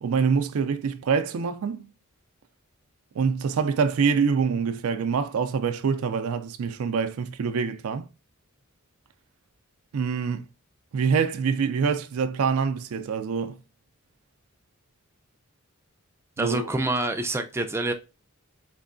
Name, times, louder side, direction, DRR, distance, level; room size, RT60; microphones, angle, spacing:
voice 1, 0.0-1.9 3.1-8.1 9.9-10.5 10.9-13.6 16.4-16.7, right 6 dB, 75° right, 0.4 m, -25 dB
voice 2, 16.4-17.9, right 2 dB, 10° right, 0.4 m, -26 dB
4.4 x 3.1 x 2.5 m
head